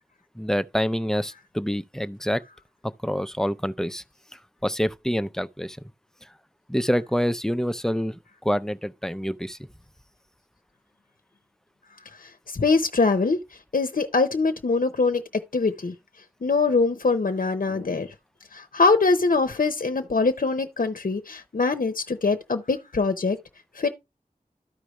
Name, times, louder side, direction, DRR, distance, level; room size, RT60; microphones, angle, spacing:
voice 1, 0.4-2.4 3.0-4.0 4.6-5.8 6.7-9.6, equal, 5° left, 0.6 m, -26 dB
voice 2, 12.0-15.2 15.5-15.9 16.4-18.1 18.5-23.4 23.7-23.9, left 4 dB, 70° left, 0.7 m, -23 dB
13.0 x 5.0 x 3.1 m
wide cardioid pair, 40°, 14 cm